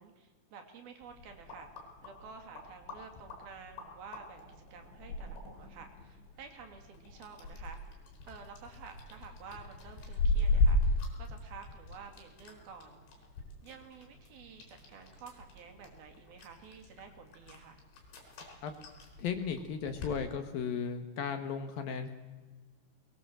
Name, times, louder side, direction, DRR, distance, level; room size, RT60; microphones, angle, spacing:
voice 1, 0.0-1.7 2.0-7.8 8.3-13.0 13.6-17.8, right 6 dB, 60° right, 5 dB, 4.0 m, -51 dB
sound 1, 1.0-20.2, left 2 dB, 90° left, 6.7 m, -37 dB
voice 2, 19.2-22.1, left 6 dB, 65° left, 8 dB, 2.8 m, -35 dB
21.5 x 21.0 x 7.5 m, 1.3 s
omnidirectional pair, 5.2 m